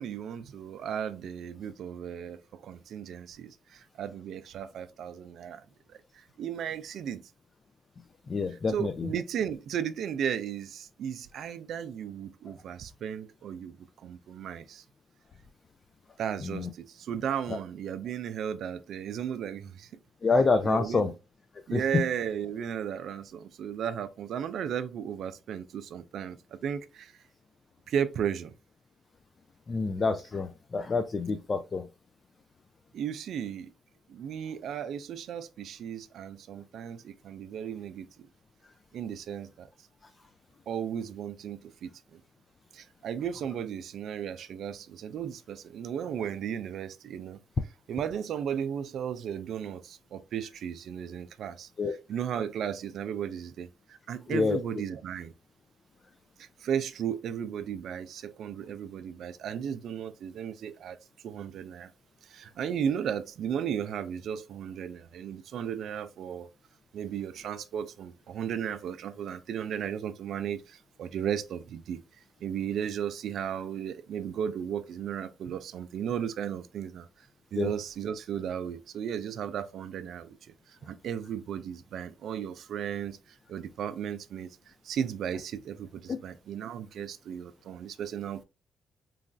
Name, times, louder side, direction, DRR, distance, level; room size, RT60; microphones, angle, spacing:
voice 1, 0.0-5.6 5.9-7.2 8.7-13.8 14.0-14.8 16.2-19.9 20.6-21.1 21.7-27.1 27.9-28.5 32.9-33.7 34.1-38.1 38.9-39.7 40.7-42.2 42.7-47.4 47.9-51.7 52.1-55.3 56.4-61.9 62.2-66.5 66.9-72.0 72.4-77.1 77.5-80.4 80.7-83.2 83.5-88.4, right 8 dB, 70° right, 0.3 m, -35 dB
voice 2, 8.3-9.1 16.4-16.7 17.5-17.6 20.2-21.1 21.7-22.0 29.7-31.8 51.8-51.9 54.3-54.6 77.6-77.7 86.1-86.2, left 4 dB, 35° left, 0.4 m, -27 dB
3.1 x 2.3 x 2.4 m
cardioid pair, 90°, 0 cm